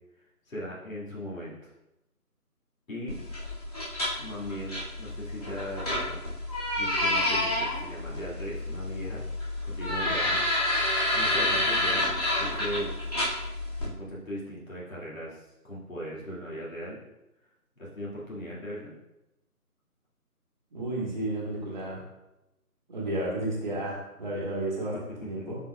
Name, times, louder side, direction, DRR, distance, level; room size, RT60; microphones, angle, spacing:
voice 1, 0.2-1.7 2.9-3.2 4.2-6.2 6.8-9.3 9.7-10.4 11.1-12.1 12.3-12.9 13.8-17.0 17.8-18.9 24.9-25.6, equal, 60° left, -5 dB, 1.9 m, -38 dB
sound 1, 3.1-13.8, left 1 dB, 25° left, 1.9 m, -29 dB
voice 2, 20.7-22.0 22.9-25.6, right 1 dB, 30° right, -3 dB, 1.6 m, -32 dB
11.0 x 4.3 x 2.2 m, 0.93 s
figure-of-eight pair, 160°, 46 cm